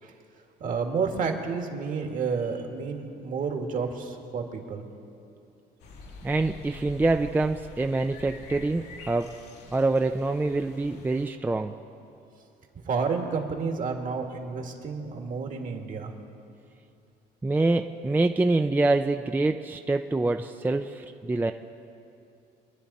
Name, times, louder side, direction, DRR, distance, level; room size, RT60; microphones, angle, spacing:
voice 1, 0.6-4.9 12.8-16.1, right 5 dB, 50° right, 3 dB, 1.9 m, -30 dB
sound 1, 5.8-11.3, left 4 dB, 85° left, 1.9 m, -46 dB
voice 2, 6.2-9.4 9.7-11.7 17.4-21.5, right 2 dB, 10° right, 6 dB, 0.4 m, -25 dB
25.5 x 10.5 x 4.2 m, 2.7 s
cardioid pair, 110°, 17 cm